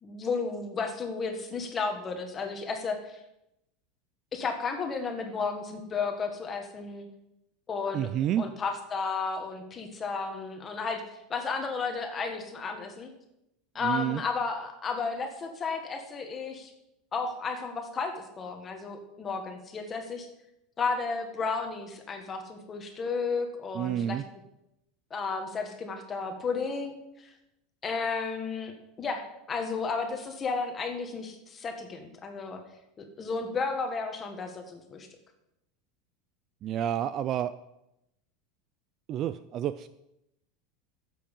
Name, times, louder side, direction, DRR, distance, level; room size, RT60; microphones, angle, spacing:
voice 1, 0.0-3.2 4.3-7.0 7.7-8.1 8.4-11.0 11.3-13.1 13.7-16.7 17.1-20.3 20.8-24.2 25.1-27.3 27.8-32.6 33.0-35.1, left 4 dB, 20° left, 4 dB, 1.5 m, -33 dB
voice 2, 7.9-8.5 13.8-14.2 23.7-24.2 36.6-37.5 39.1-39.9, right 11 dB, 30° right, 14 dB, 0.3 m, -29 dB
13.5 x 7.7 x 5.4 m, 0.85 s
supercardioid pair, 175°, 0 cm